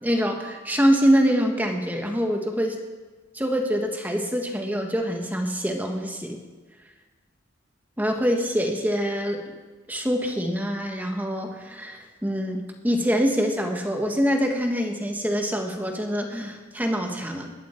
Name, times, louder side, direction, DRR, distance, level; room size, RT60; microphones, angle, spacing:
voice 1, 0.0-2.8 3.3-6.4 8.0-9.5 9.9-17.5, equal, 10° right, 3 dB, 1.4 m, -25 dB
21.5 x 11.5 x 4.5 m, 1.3 s
head